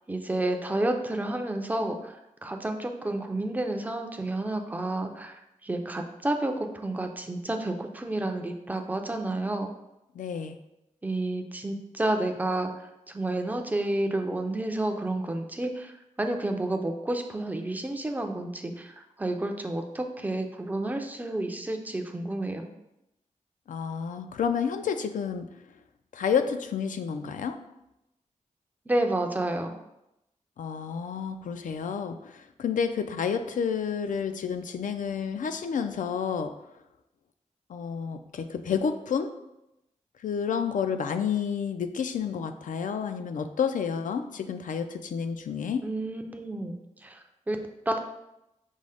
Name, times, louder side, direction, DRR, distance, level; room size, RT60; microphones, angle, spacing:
voice 1, 0.1-9.7 11.0-12.7 13.1-15.9 16.2-22.7 28.9-29.8 45.8-46.8 47.0-47.2 47.5-47.6 47.9-48.0, right 1 dB, 10° right, 4 dB, 0.4 m, -30 dB
voice 2, 10.2-10.6 23.7-25.5 26.1-27.6 30.6-36.5 37.7-39.3 40.2-45.8, left 7 dB, 80° left, 8 dB, 0.4 m, -30 dB
5.4 x 2.0 x 4.8 m, 0.88 s
wide cardioid pair, 165°, 13 cm